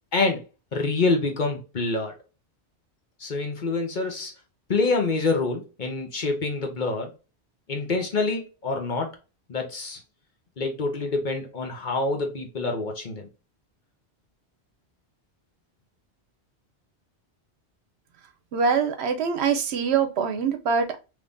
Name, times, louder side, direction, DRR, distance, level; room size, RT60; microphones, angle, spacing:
voice 1, 0.1-0.4 0.7-2.1 3.2-4.3 4.7-7.1 7.7-9.1 9.5-10.0 10.6-13.3, left 3 dB, 50° left, 0.9 m, -26 dB
voice 2, 18.5-21.0, right 6 dB, 75° right, 0.9 m, -24 dB
3.6 x 3.1 x 2.5 m
omnidirectional pair, 1.1 m